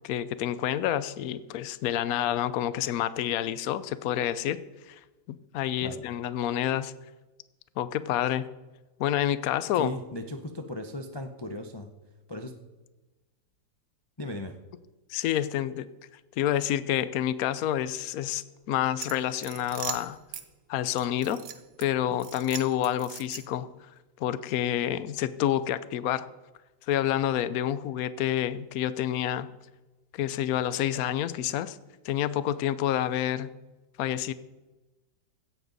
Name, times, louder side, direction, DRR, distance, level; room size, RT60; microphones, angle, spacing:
voice 1, 0.0-4.6 4.9-5.0 5.3-6.9 7.8-8.5 9.0-9.9 15.1-15.9 16.4-20.2 20.7-21.4 21.8-23.7 24.2-26.2 26.9-29.5 30.1-31.8 32.0-33.5 34.0-34.3, left 11 dB, 65° left, 15 dB, 0.9 m, -28 dB
voice 2, 9.7-11.9 12.3-12.6 14.2-14.5 22.1-22.2, left 1 dB, 40° left, 5 dB, 0.3 m, -36 dB
sound 1, 19.0-20.5 21.0-21.9 22.2-23.7, right 9 dB, 85° right, 1.8 m, -40 dB
16.5 x 13.5 x 4.0 m, 1.1 s
omnidirectional pair, 2.1 m